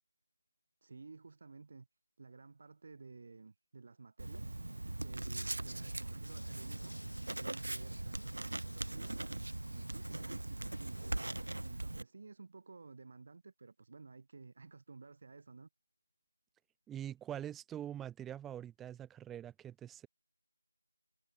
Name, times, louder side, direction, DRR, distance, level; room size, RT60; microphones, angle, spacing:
voice 1, 0.8-1.9 2.2-4.6 5.0-6.9 7.4-9.2 9.7-11.1 11.6-15.7, right 4 dB, 35° right, 2.0 m, -54 dB
Writing, 4.2-12.0, right 2 dB, 65° right, 1.0 m, -40 dB
sound 1, 6.2-11.7, left 1 dB, 85° left, 1.5 m, -58 dB
voice 2, 16.9-20.1, right 10 dB, 5° right, 0.3 m, -44 dB
figure-of-eight pair, 170°, 0 cm